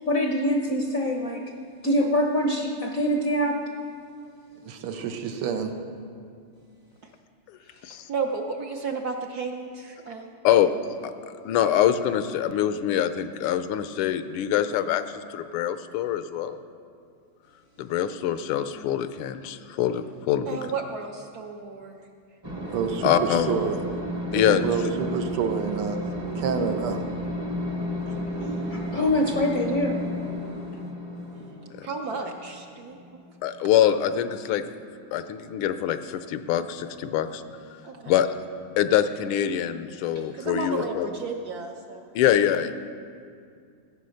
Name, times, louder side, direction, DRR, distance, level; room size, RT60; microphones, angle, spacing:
voice 1, 0.1-1.4 1.8-3.6 28.7-30.0, left 1 dB, 60° left, 2 dB, 0.9 m, -24 dB
voice 2, 4.6-5.7 22.7-23.8 24.3-26.0 26.4-27.1, right 6 dB, 85° right, 5 dB, 1.9 m, -28 dB
voice 3, 7.6-10.3 20.4-22.1 28.1-28.8 31.8-33.2 37.8-38.1 40.3-42.1, right 4 dB, 60° right, 2 dB, 1.0 m, -33 dB
voice 4, 11.4-16.6 17.8-20.6 23.0-23.5 24.3-24.6 33.4-34.6 35.1-37.4 38.1-38.3 38.8-41.1 42.1-42.8, left 10 dB, 80° left, 11 dB, 1.5 m, -24 dB
sound 1, 22.4-33.5, left 1 dB, 20° right, 0.7 m, -33 dB
15.0 x 8.6 x 6.4 m, 2.3 s
omnidirectional pair, 2.4 m